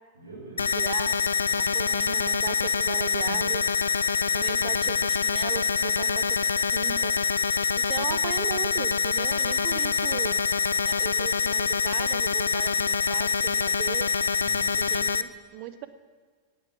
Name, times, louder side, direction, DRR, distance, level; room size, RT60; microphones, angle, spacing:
voice 1, 0.1-0.8 1.3-1.9 4.6-5.0 14.4-14.9, right 2 dB, 70° right, -5 dB, 3.8 m, -47 dB
sound 1, 0.6-15.2, left 5 dB, 75° left, 0.4 m, -25 dB
voice 2, 0.7-3.6 4.3-7.2 7.8-10.4 10.8-14.1 14.8-15.9, right 13 dB, 45° right, 13 dB, 0.8 m, -38 dB
Strum, 3.2-8.4, left 1 dB, 90° right, 1.4 m, -52 dB
17.0 x 9.5 x 6.1 m, 1.5 s
figure-of-eight pair, 90°, 0 cm